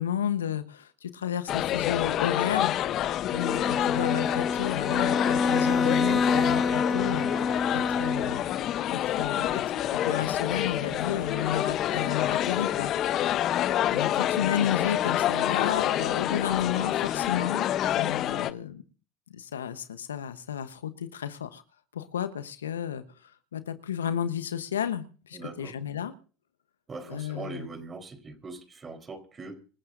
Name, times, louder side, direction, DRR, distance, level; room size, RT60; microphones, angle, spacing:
voice 1, 0.0-7.3 7.7-8.4 8.9-9.6 9.9-13.4 13.9-17.7 17.9-18.8 19.3-21.6 21.9-23.0 23.5-26.1 27.1-27.7, left 9 dB, 90° left, 12 dB, 1.0 m, -32 dB
sound 1, 1.5-18.5, left 12 dB, 50° left, 0.8 m, -28 dB
Bowed string instrument, 3.2-8.5, left 4 dB, 30° left, 1.4 m, -27 dB
voice 2, 10.9-11.7 25.3-25.7 26.9-29.6, right 3 dB, 30° right, 6 dB, 3.9 m, -41 dB
26.5 x 14.0 x 2.6 m, 0.40 s
hypercardioid pair, 75°, 0 cm